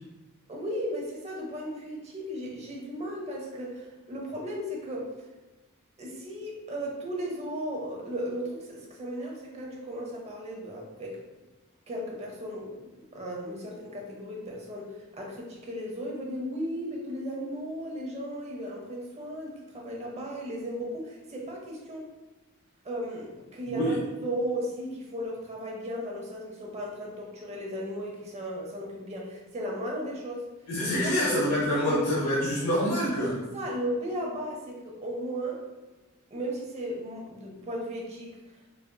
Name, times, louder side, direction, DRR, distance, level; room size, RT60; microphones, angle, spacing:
voice 1, 0.5-5.1 6.0-11.2 11.9-22.1 22.8-30.5 30.8-31.4 31.9-32.0 33.5-35.6 36.3-38.6, equal, 30° right, -2 dB, 0.7 m, -35 dB
voice 2, 30.7-33.4, equal, 85° left, -5 dB, 0.7 m, -26 dB
4.1 x 2.5 x 2.2 m, 1.1 s
head